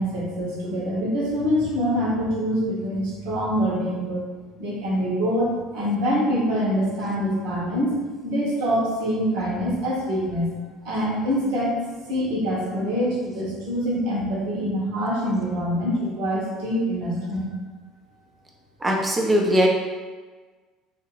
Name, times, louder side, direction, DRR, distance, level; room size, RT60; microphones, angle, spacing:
voice 1, 0.0-4.2 4.6-7.9 8.2-10.5 10.8-11.8 12.1-17.5, equal, 65° right, -6 dB, 1.1 m, -25 dB
voice 2, 18.8-19.7, equal, 20° right, 0 dB, 0.6 m, -20 dB
2.8 x 2.5 x 3.0 m, 1.4 s
figure-of-eight pair, 65°, 0 cm